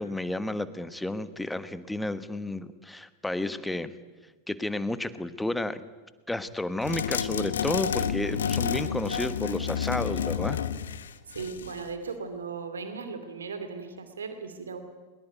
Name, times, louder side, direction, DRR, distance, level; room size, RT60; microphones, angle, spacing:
voice 1, 0.0-3.9 4.5-5.9 6.3-10.6, left 2 dB, 5° left, 14 dB, 1.3 m, -31 dB
sound 1, 6.8-11.9, left 7 dB, 65° left, 1.2 m, -30 dB
voice 2, 11.3-14.8, right 5 dB, 70° right, 9 dB, 2.5 m, -37 dB
22.0 x 21.0 x 9.4 m, 1.3 s
figure-of-eight pair, 90°, 0 cm